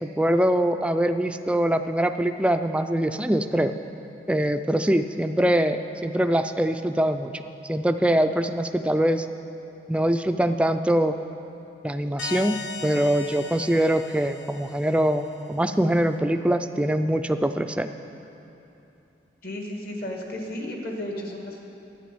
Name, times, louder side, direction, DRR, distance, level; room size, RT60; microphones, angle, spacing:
voice 1, 0.2-3.7 4.3-7.3 7.7-9.3 9.9-11.1 11.8-12.6 12.8-15.2 15.5-17.9, right 1 dB, 5° right, 8 dB, 0.3 m, -23 dB
sound 1, 12.2-15.6, left 5 dB, 90° left, 0.8 m, -38 dB
voice 2, 19.4-21.6, left 1 dB, 50° left, 1 dB, 1.8 m, -33 dB
11.5 x 9.9 x 7.7 m, 2.9 s
head